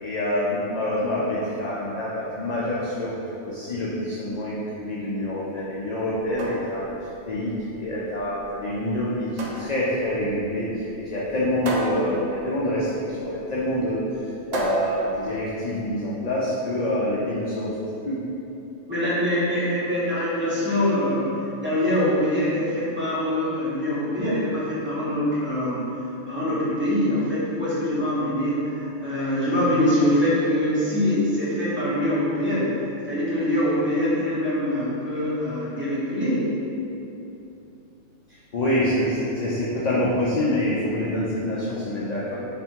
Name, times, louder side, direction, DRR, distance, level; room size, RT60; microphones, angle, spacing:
voice 1, 0.0-3.1 3.4-6.9 7.3-9.3 9.6-14.0 14.5-17.7 18.0-18.2 38.5-42.4, left 1 dB, 55° left, -7 dB, 0.4 m, -26 dB
sound 1, 6.1-16.1, right 1 dB, 70° right, 0.4 m, -34 dB
voice 2, 18.9-25.8 26.3-32.7 33.1-36.4, left 1 dB, 10° right, -10 dB, 0.9 m, -24 dB
3.3 x 2.5 x 4.4 m, 2.8 s
omnidirectional pair, 1.3 m